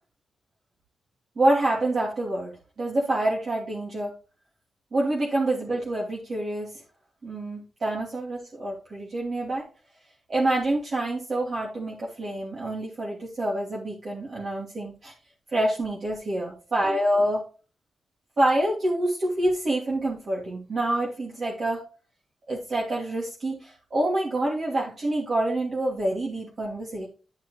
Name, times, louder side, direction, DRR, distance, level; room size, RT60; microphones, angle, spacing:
voice 1, 1.4-2.5 2.8-4.1 4.9-6.8 7.2-9.7 10.3-15.1 15.5-17.4 18.4-21.8 22.5-27.1, right 1 dB, 50° right, -5 dB, 2.9 m, -27 dB
12.0 x 5.3 x 3.4 m, 0.36 s
wide cardioid pair, 115°, 0 cm